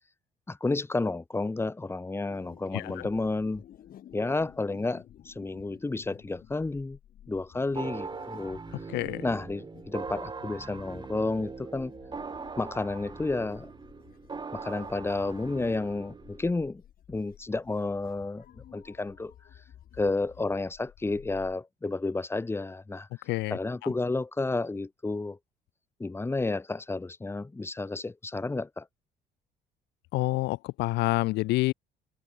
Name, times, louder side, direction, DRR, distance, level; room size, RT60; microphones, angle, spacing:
voice 1, 0.5-3.6 4.1-7.0 7.3-8.6 9.2-11.9 12.6-13.7 14.5-16.8 17.1-18.4 18.7-19.3 20.0-23.1 23.5-25.4 26.0-28.8, left 3 dB, 15° left, 1.3 m, -31 dB
sound 1, 2.3-21.6, left 11 dB, 60° left, 7.8 m, -53 dB
voice 2, 2.7-3.1 8.7-9.2 23.3-23.6 30.1-31.7, left 20 dB, 85° left, 0.8 m, -28 dB
sound 2, 7.8-16.5, right 4 dB, 25° right, 4.5 m, -41 dB
cardioid pair, 110°, 17 cm